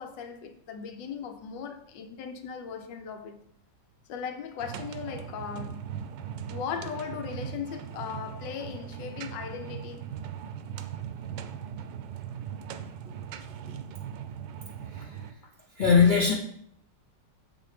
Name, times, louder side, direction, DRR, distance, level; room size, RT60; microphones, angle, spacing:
voice 1, 0.0-3.5 4.1-6.0 6.5-10.1 13.1-13.2 13.7-13.8, left 7 dB, 75° left, 1.5 m, -38 dB
sound 1, 4.6-15.3, right 8 dB, 80° right, 1.2 m, -39 dB
voice 2, 14.8-15.4 15.7-16.3, left 6 dB, 55° left, 0.5 m, -22 dB
7.0 x 5.0 x 4.9 m
omnidirectional pair, 2.0 m